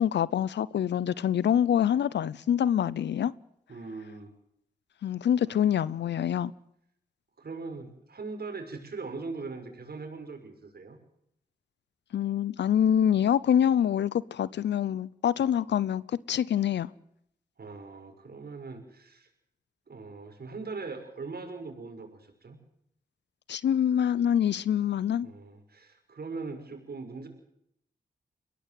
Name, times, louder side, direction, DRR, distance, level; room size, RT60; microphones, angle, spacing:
voice 1, 0.0-3.3 5.0-6.5 12.1-16.9 23.5-25.3, left 9 dB, 85° left, 0.7 m, -25 dB
voice 2, 3.7-4.3 7.4-11.0 15.4-15.5 17.6-19.3 19.9-22.6 25.2-27.3, right 4 dB, 60° right, 6.2 m, -40 dB
22.5 x 17.5 x 7.7 m
supercardioid pair, 45°, 18 cm